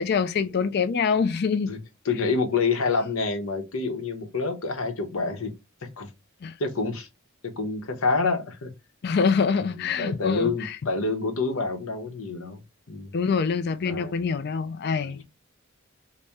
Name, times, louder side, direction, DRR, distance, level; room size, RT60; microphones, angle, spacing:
voice 1, 0.0-1.7 6.4-6.6 9.0-10.8 13.1-15.2, left 5 dB, 50° left, 0.4 m, -25 dB
voice 2, 2.0-5.5 6.0-6.1 6.6-7.1 7.4-8.7 9.5-9.7 10.0-12.6 12.9-13.1 13.8-14.1 15.0-15.2, left 4 dB, 75° left, 0.9 m, -27 dB
4.1 x 2.1 x 3.4 m
head